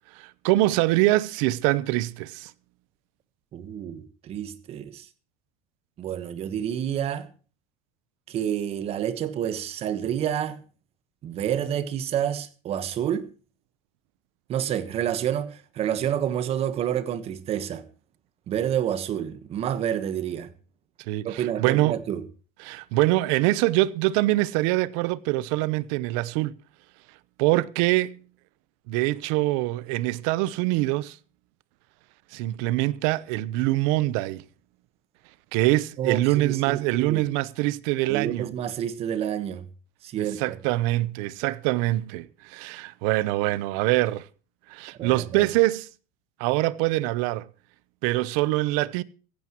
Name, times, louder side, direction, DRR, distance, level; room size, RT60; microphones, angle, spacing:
voice 1, 0.2-2.5 21.1-21.9 22.6-26.5 27.4-28.2 28.9-31.2 32.3-34.4 35.5-38.5 40.2-44.2 44.7-45.9 46.4-47.4 48.0-49.0, right 18 dB, 55° right, 0.8 m, -24 dB
voice 2, 3.5-5.1 6.0-7.3 8.3-10.6 11.2-13.3 14.5-17.8 18.5-20.5 21.2-22.2 36.0-37.2 38.1-39.7 40.0-40.6 45.0-45.5, right 10 dB, 30° right, 1.3 m, -29 dB
16.0 x 15.0 x 3.0 m
supercardioid pair, 165°, 20 cm